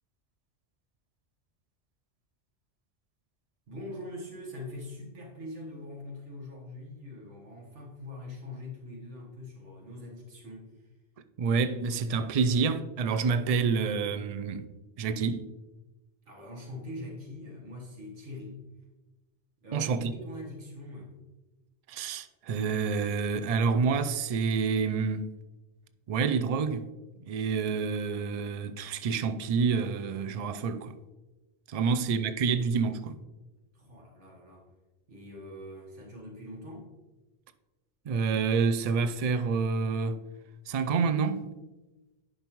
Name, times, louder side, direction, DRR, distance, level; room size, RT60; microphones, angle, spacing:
voice 1, 3.7-10.7 16.3-18.6 19.6-21.1 31.8-32.3 33.7-34.7 35.1-36.9, left 1 dB, 85° right, 1.7 m, -43 dB
voice 2, 11.4-14.7 15.0-15.5 19.7-20.1 21.9-25.3 26.1-26.9 27.3-30.9 31.7-33.2 38.1-40.2 40.7-41.5, right 5 dB, 55° right, 0.4 m, -28 dB
10.5 x 5.4 x 3.0 m
omnidirectional pair, 1.2 m